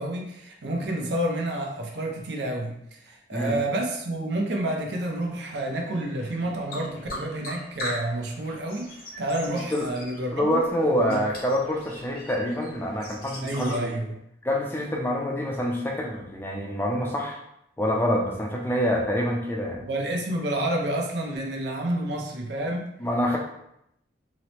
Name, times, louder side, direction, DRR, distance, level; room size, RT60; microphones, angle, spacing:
voice 1, 0.0-11.2 13.4-14.2 19.8-22.9, right 1 dB, 65° right, 1 dB, 0.5 m, -29 dB
sound 1, 4.9-13.8, equal, 50° left, 0.7 m, -41 dB
voice 2, 10.3-13.9 14.4-17.4 17.8-19.8 23.0-23.4, equal, 10° left, -1 dB, 0.3 m, -26 dB
2.9 x 2.0 x 2.9 m, 0.77 s
head